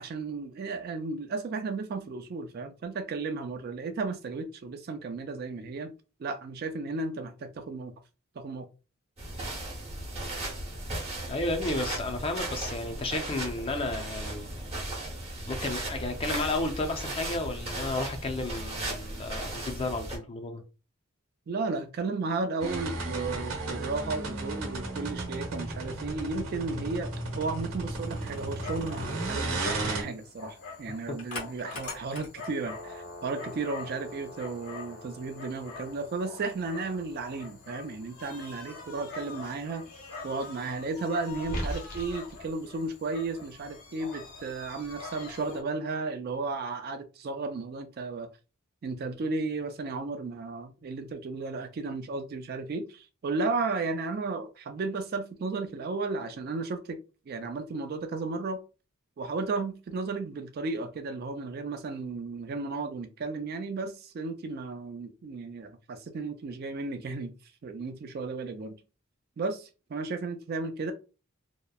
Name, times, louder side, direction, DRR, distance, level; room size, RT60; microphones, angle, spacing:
voice 1, 0.0-5.9 6.2-7.9 8.4-8.6 21.5-39.9 40.2-48.3 48.8-57.0 57.3-58.6 59.2-67.3 67.6-68.8 69.4-70.9, right 3 dB, 45° right, 0.3 m, -34 dB
sound 1, 9.2-20.2, right 1 dB, 30° right, 0.8 m, -36 dB
voice 2, 11.3-14.5 15.5-20.6, left 2 dB, 25° left, 0.4 m, -32 dB
sound 2, 22.6-30.0, right 2 dB, 85° right, 0.9 m, -34 dB
Dog, 27.9-45.6, left 2 dB, 85° left, 0.8 m, -42 dB
2.8 x 2.0 x 2.2 m
head